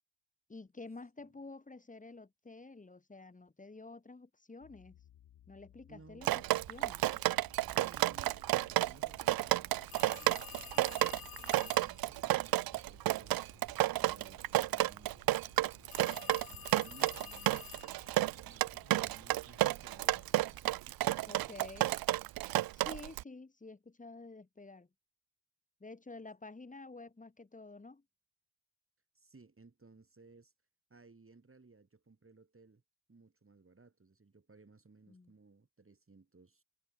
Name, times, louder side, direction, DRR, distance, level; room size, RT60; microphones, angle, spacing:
voice 1, 0.5-5.0 5.5-7.0 21.3-21.9 22.7-24.9 25.8-28.0 35.1-35.3, left 3 dB, 15° left, 1.4 m, -50 dB
sound 1, 4.6-20.6, left 11 dB, 65° left, 4.7 m, -62 dB
voice 2, 5.9-6.4 7.7-15.2 16.1-17.7 18.2-21.5 29.1-30.5 30.9-32.8 33.1-36.6, right 3 dB, 25° right, 6.6 m, -60 dB
Drip, 6.2-23.2, right 16 dB, 50° right, 0.5 m, -31 dB
sound 2, 9.9-12.0 15.9-18.1, left 9 dB, 50° left, 1.6 m, -50 dB
supercardioid pair, 55°, 47 cm